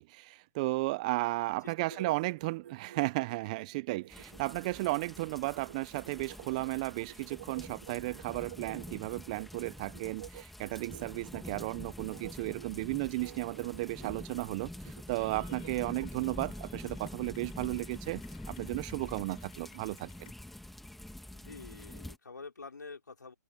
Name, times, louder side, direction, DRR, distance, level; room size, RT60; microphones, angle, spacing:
voice 1, 0.0-20.3, right 22 dB, 25° right, 0.5 m, -34 dB
voice 2, 1.6-2.1 21.3-23.3, left 4 dB, 80° left, 4.9 m, -48 dB
sound 1, 1.6-9.4 9.9-11.6 12.0-12.3 12.6-12.9 13.2-14.2 14.6-16.4, right 11 dB, 40° right, 2.9 m, -50 dB
sound 2, 4.1-22.2, left 1 dB, ahead, 1.8 m, -46 dB
Clapping / Cheering, 15.1-20.3, left 14 dB, 35° left, 5.1 m, -61 dB
hypercardioid pair, 150°, 10 cm